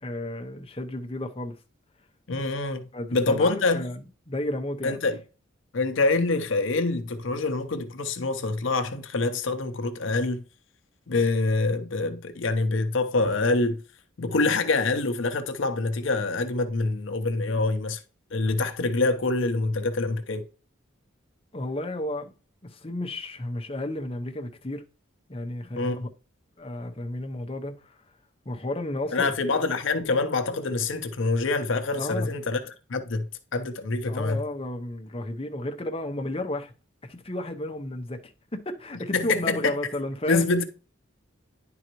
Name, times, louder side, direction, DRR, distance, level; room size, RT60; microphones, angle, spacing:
voice 1, 0.0-1.6 2.9-5.0 21.5-22.3 22.6-24.8 25.3-26.1 26.6-27.9 28.5-29.3 32.0-32.3 34.1-36.7 37.0-40.4, left 1 dB, 30° left, 0.7 m, -32 dB
voice 2, 2.3-3.9 4.8-5.2 5.7-10.4 11.1-13.8 14.2-18.0 18.3-20.5 25.7-26.0 29.1-34.4 39.1-39.7 40.3-40.6, left 3 dB, 70° left, 0.7 m, -26 dB
10.0 x 3.8 x 3.0 m
head